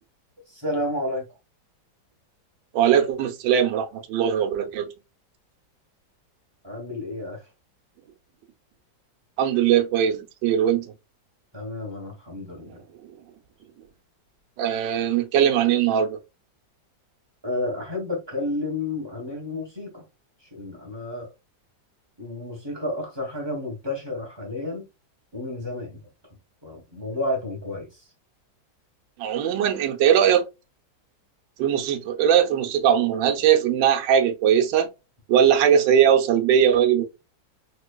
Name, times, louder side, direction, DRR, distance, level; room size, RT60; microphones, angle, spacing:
voice 1, 0.5-1.3 6.6-7.5 11.5-12.8 17.4-20.0 20.5-21.3 22.2-24.9 25.3-26.0 26.6-28.1, left 1 dB, 25° right, 0.6 m, -31 dB
voice 2, 2.7-4.9 9.4-10.9 14.6-16.2 29.2-30.5 31.6-34.9 35.3-37.0, right 9 dB, 80° right, 1.3 m, -20 dB
3.7 x 3.1 x 2.2 m
omnidirectional pair, 2.0 m